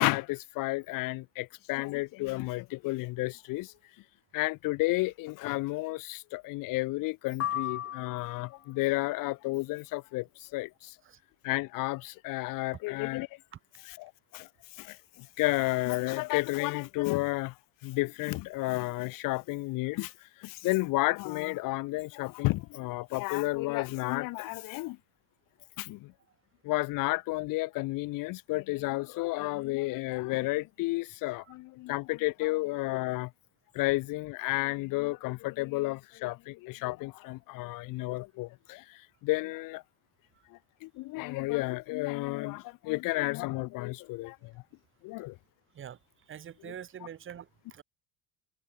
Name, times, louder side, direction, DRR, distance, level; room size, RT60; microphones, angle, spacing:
voice 1, 0.0-3.7 4.3-10.2 10.5-10.7 11.4-13.3 13.9-14.4 14.8-14.9 15.4-17.5 17.8-20.1 20.4-25.0 25.8-26.0 26.7-33.3 33.8-38.8 39.2-39.8 40.8-44.4 45.0-45.3 46.6-46.7, left 21 dB, 65° left, 3.6 m, -31 dB
sound 1, 7.4-8.7, left 11 dB, 40° left, 2.9 m, -35 dB
voice 2, 46.3-47.8, right 9 dB, 35° right, 2.2 m, -44 dB
cardioid pair, 125°, 35 cm